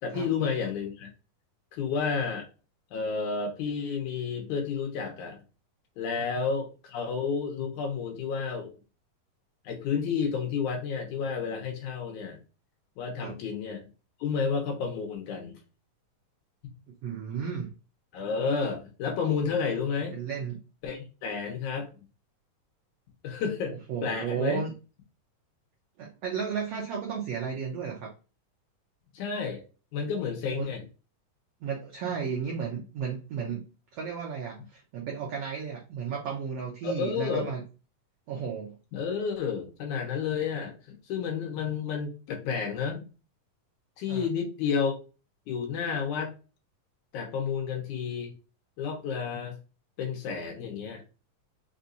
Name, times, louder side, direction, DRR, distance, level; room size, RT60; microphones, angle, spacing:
voice 1, 0.0-1.1 1.7-2.5 2.9-5.4 6.0-8.7 9.6-12.4 13.0-13.8 14.2-15.6 18.1-20.2 20.8-22.1 23.2-23.8 24.0-24.6 29.1-29.6 29.9-30.8 36.8-37.5 38.9-40.7 41.1-43.0 44.0-45.0 45.5-46.3 47.1-48.3 48.8-49.5 50.0-51.0, left 6 dB, 70° left, 1 dB, 2.4 m, -31 dB
voice 2, 17.0-17.7 20.1-20.6 23.9-24.7 26.0-28.1 30.5-30.7 31.6-33.6 33.9-37.6 38.3-38.7 44.1-44.3, right 6 dB, 75° right, -1 dB, 1.4 m, -33 dB
5.7 x 2.6 x 2.6 m, 0.33 s
omnidirectional pair, 3.9 m